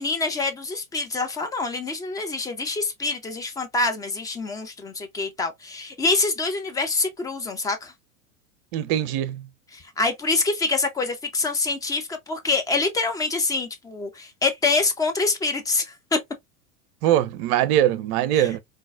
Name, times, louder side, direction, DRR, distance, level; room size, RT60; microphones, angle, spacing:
voice 1, 0.0-7.9 9.7-16.2 18.3-18.5, left 3 dB, 10° left, 0.3 m, -26 dB
voice 2, 8.7-9.5 17.0-18.6, right 12 dB, 45° right, 0.6 m, -22 dB
3.8 x 2.5 x 2.4 m
hypercardioid pair, 90°, 43 cm